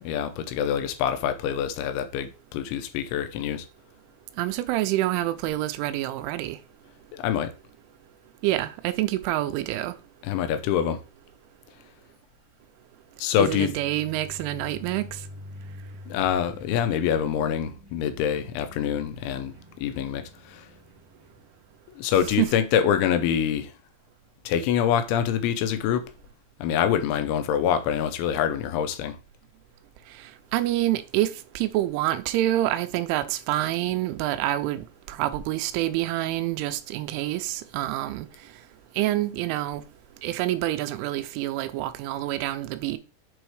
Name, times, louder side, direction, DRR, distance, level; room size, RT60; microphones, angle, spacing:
voice 1, 0.0-3.7 7.1-7.5 10.3-11.0 13.2-13.7 16.1-20.7 21.9-23.7 24.5-26.1 26.6-29.2, left 9 dB, 85° left, 3.1 m, -25 dB
voice 2, 4.4-6.6 8.4-10.0 13.4-15.2 22.4-22.5 30.2-38.3 39.0-39.8 40.2-43.0, right 15 dB, 85° right, 3.1 m, -27 dB
sound 1, 13.5-21.8, left 1 dB, 30° right, 0.4 m, -46 dB
7.9 x 3.5 x 4.8 m
omnidirectional pair, 5.6 m